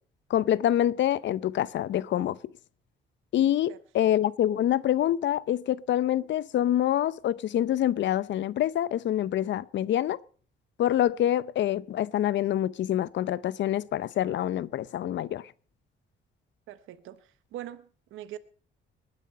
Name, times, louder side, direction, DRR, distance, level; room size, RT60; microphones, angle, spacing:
voice 1, 0.3-2.4 3.3-10.2 10.8-15.5, left 11 dB, 65° left, 0.6 m, -26 dB
voice 2, 16.7-17.2 17.5-18.4, right 12 dB, 85° right, 0.9 m, -42 dB
20.5 x 9.8 x 5.5 m
cardioid pair, 90°, 20 cm